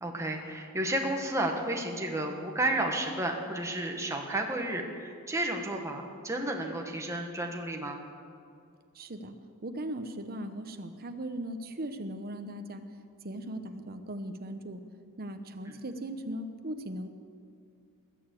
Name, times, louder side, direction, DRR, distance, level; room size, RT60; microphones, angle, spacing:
voice 1, 0.0-8.0 15.7-15.8, right 1 dB, 15° right, 1 dB, 1.5 m, -32 dB
voice 2, 8.9-9.4 9.6-12.8 13.2-14.8 15.2-17.1, right 1 dB, 45° right, 7 dB, 1.0 m, -38 dB
20.5 x 7.1 x 8.4 m, 2.5 s
head